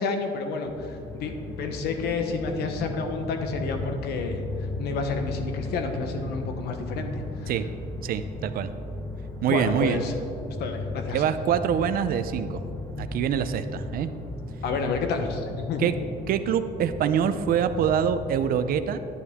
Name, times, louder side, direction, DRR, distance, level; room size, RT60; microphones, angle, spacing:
voice 1, 0.0-1.3 1.6-4.4 4.8-7.5 9.5-10.1 10.6-11.2 14.6-15.9, left 4 dB, 75° left, 5 dB, 1.1 m, -30 dB
Temple Cave Desert Storm, 0.7-18.6, left 2 dB, 15° left, 1.2 m, -36 dB
voice 2, 8.0-8.7 9.4-10.0 11.1-12.6 13.0-14.1 15.8-15.9 16.3-19.0, right 8 dB, 60° right, 11 dB, 0.6 m, -25 dB
11.0 x 9.4 x 3.6 m, 2.7 s
cardioid pair, 110°, 17 cm